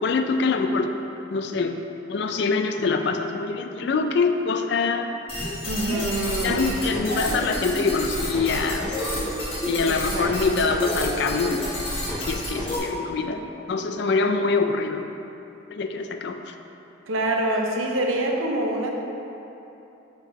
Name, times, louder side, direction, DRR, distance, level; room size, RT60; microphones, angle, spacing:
voice 1, 0.0-0.9 1.3-1.8 2.1-5.2 6.4-9.0 9.7-11.6 12.2-13.4 13.7-15.1 15.7-16.5, left 4 dB, 55° left, 6 dB, 0.3 m, -24 dB
sound 1, 5.3-12.8, equal, 30° left, 1.2 m, -29 dB
voice 2, 5.7-6.8 9.9-10.6 17.1-18.9, right 1 dB, 85° right, 1 dB, 0.7 m, -26 dB
6.2 x 3.8 x 4.6 m, 2.9 s
head